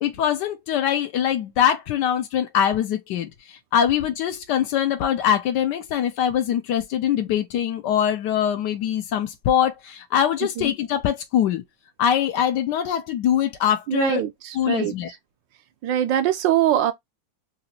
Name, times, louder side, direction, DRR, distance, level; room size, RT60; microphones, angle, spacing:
voice 1, 0.0-11.6 12.0-14.2 14.5-15.1, left 9 dB, 75° left, 1.1 m, -23 dB
voice 2, 13.9-14.9 15.8-16.9, right 11 dB, 75° right, 1.2 m, -22 dB
3.9 x 2.5 x 2.6 m
omnidirectional pair, 2.1 m